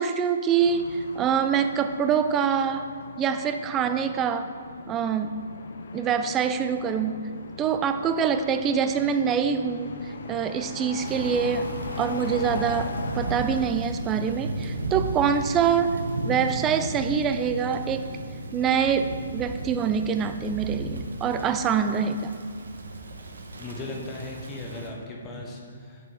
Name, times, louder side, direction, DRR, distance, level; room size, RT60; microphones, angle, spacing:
voice 1, 0.0-2.9 3.2-4.5 4.9-5.5 5.9-7.3 7.6-11.7 12.0-18.1 18.5-22.3, right 7 dB, 20° right, 9 dB, 0.3 m, -25 dB
sound 1, 0.6-13.7, left 4 dB, 65° left, 0.5 m, -40 dB
Thunder / Rain, 11.0-24.9, right 2 dB, 85° right, 0.8 m, -35 dB
voice 2, 23.6-26.1, left 2 dB, 20° left, -1 dB, 0.9 m, -37 dB
5.7 x 5.0 x 4.8 m, 2.2 s
hypercardioid pair, 150°, 0 cm